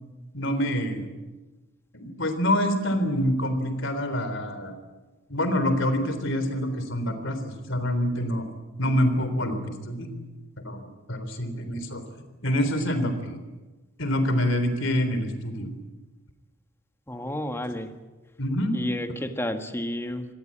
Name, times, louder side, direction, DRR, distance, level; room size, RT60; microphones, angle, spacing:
voice 1, 0.3-1.1 1.9-4.7 5.3-8.5 8.8-10.3 10.6-12.0 12.4-13.4 14.0-15.7 18.4-18.7 19.1-19.2, equal, 60° left, 9 dB, 3.7 m, -26 dB
voice 2, 17.1-17.9 18.7-20.3, left 1 dB, 10° left, 7 dB, 1.6 m, -31 dB
26.0 x 18.5 x 8.8 m, 1.2 s
head